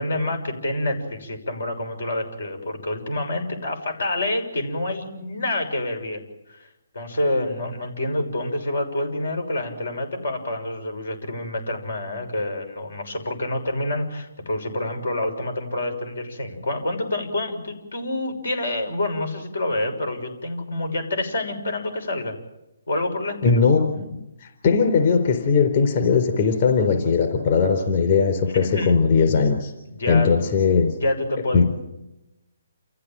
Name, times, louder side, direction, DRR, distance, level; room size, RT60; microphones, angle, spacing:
voice 1, 0.0-6.7 6.9-22.3 22.9-23.6 28.5-29.0 30.0-30.3 31.0-31.6, left 1 dB, 85° left, 5 dB, 6.4 m, -27 dB
voice 2, 23.4-24.1 24.4-29.7 30.1-30.9 31.5-31.6, left 5 dB, 40° left, 4 dB, 4.1 m, -19 dB
29.0 x 15.5 x 9.0 m, 0.93 s
hypercardioid pair, 155°, 0 cm